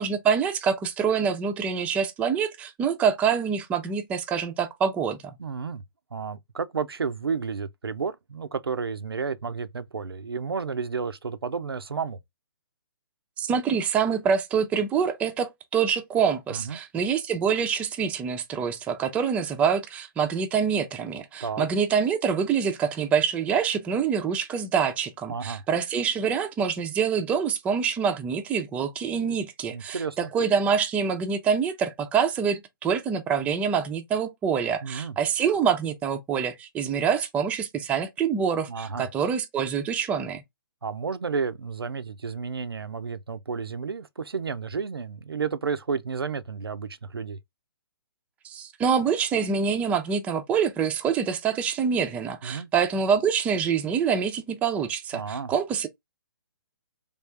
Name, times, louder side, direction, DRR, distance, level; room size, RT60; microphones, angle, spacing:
voice 1, 0.0-5.3 13.4-40.4 48.4-55.9, right 6 dB, 10° right, 0.4 m, -26 dB
voice 2, 5.4-5.8 6.1-12.2 16.5-16.8 21.4-21.7 25.3-25.6 29.7-30.3 34.8-35.1 38.7-39.1 40.8-47.4 52.4-52.7 55.1-55.5, right 5 dB, 90° right, 0.5 m, -31 dB
3.4 x 2.4 x 3.3 m
figure-of-eight pair, 140°, 12 cm